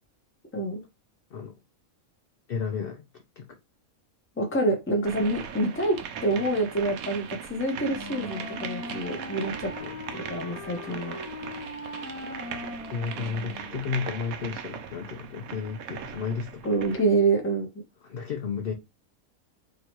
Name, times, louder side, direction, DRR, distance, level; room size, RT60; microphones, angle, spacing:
voice 1, 2.5-3.6 9.8-10.0 12.9-16.7 18.0-18.7, left 6 dB, 55° left, 0.7 m, -33 dB
voice 2, 4.4-9.7 10.1-11.2 16.6-17.7, right 2 dB, 10° left, 0.7 m, -27 dB
sound 1, 5.1-17.1, right 7 dB, 80° right, 1.1 m, -39 dB
Wind instrument woodwind instrument, 7.8-13.8, left 2 dB, 75° left, 1.4 m, -40 dB
3.0 x 2.7 x 4.5 m
omnidirectional pair, 1.5 m